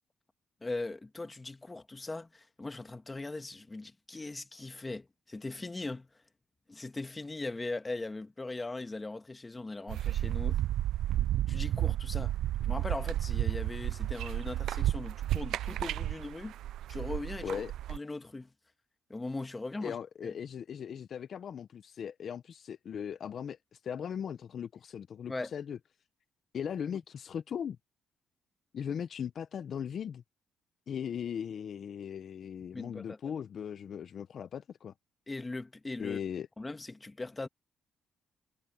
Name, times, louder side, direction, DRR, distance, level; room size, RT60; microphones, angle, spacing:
voice 1, 0.6-6.1 6.7-10.6 11.5-12.4 12.6-16.5 16.9-17.6 17.9-18.5 19.1-20.0 20.2-20.3 25.3-25.5 32.7-33.2 35.3-36.2 36.6-37.5, left 2 dB, 20° left, 1.6 m, -39 dB
sound 1, 9.9-18.0, right 13 dB, 80° right, 0.4 m, -32 dB
voice 2, 19.8-25.8 26.5-27.8 28.7-30.2 30.9-34.9 36.0-36.5, left 8 dB, 55° left, 0.8 m, -38 dB
cardioid pair, 90°, 0 cm